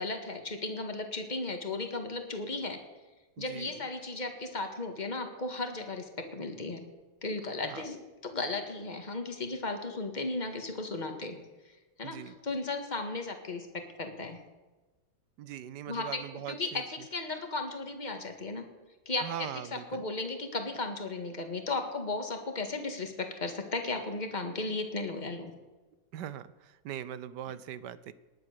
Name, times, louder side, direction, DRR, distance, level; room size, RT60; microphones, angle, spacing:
voice 1, 0.0-2.8 3.4-6.9 7.2-11.4 12.0-14.4 15.9-18.7 19.1-25.5 27.5-27.6, left 3 dB, 25° left, 5 dB, 1.8 m, -35 dB
voice 2, 3.4-3.7 7.6-7.9 12.0-12.4 15.4-16.8 19.2-20.0 26.1-28.1, right 10 dB, 70° right, 16 dB, 1.3 m, -41 dB
19.0 x 10.5 x 6.7 m, 1.2 s
omnidirectional pair, 2.0 m